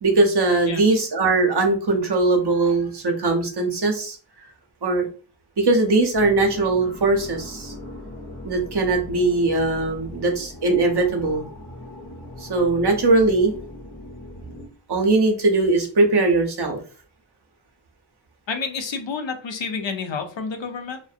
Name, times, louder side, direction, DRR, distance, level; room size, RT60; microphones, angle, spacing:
voice 1, 0.0-4.2 4.8-5.1 5.6-7.7 8.4-11.4 12.4-13.5 14.9-16.8, right 3 dB, 55° right, 3 dB, 0.7 m, -20 dB
voice 2, 0.7-1.0 18.5-21.0, left 5 dB, 70° left, 6 dB, 0.6 m, -29 dB
sound 1, 6.1-14.7, left 1 dB, 35° left, 0.9 m, -39 dB
2.5 x 2.1 x 2.4 m, 0.40 s
wide cardioid pair, 80°, 47 cm